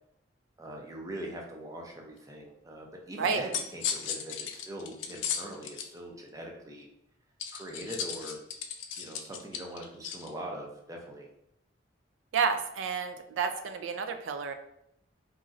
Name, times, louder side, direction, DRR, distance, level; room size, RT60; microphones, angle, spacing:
voice 1, 0.6-6.9 7.5-8.4 9.0-11.3, right 1 dB, 15° right, 0 dB, 0.5 m, -42 dB
sound 1, 3.2-5.9 7.4-10.3, left 7 dB, 70° left, 0.3 m, -36 dB
voice 2, 12.3-14.5, right 5 dB, 75° right, 7 dB, 0.3 m, -30 dB
3.0 x 2.6 x 2.4 m, 0.77 s
head